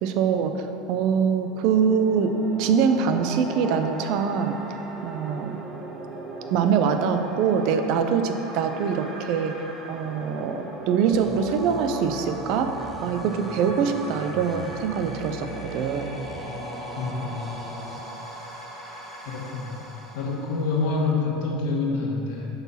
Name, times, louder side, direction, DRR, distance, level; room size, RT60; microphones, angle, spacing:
voice 1, 0.0-4.6 5.0-5.6 6.5-9.6 9.9-12.7 13.0-16.2, right 6 dB, 65° right, 7 dB, 0.5 m, -24 dB
sound 1, 1.3-21.1, right 1 dB, 25° right, 1.6 m, -38 dB
sound 2, 11.1-18.0, right 2 dB, 5° left, 0.8 m, -41 dB
voice 2, 17.0-17.6 19.3-19.8 20.1-22.5, left 3 dB, 70° left, -1 dB, 1.4 m, -27 dB
6.9 x 4.0 x 5.6 m, 2.8 s
hypercardioid pair, 90°, 0 cm